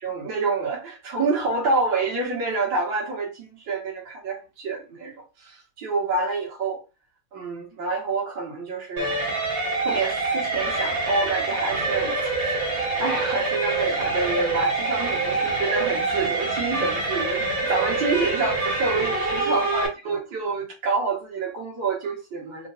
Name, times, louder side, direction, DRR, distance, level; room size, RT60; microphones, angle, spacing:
voice 1, 0.0-6.8 7.3-9.1 9.8-22.7, right 3 dB, 60° right, 2.4 m, -27 dB
sound 1, 9.0-19.9, right 3 dB, 40° right, 2.1 m, -25 dB
4.5 x 3.1 x 2.6 m
omnidirectional pair, 2.4 m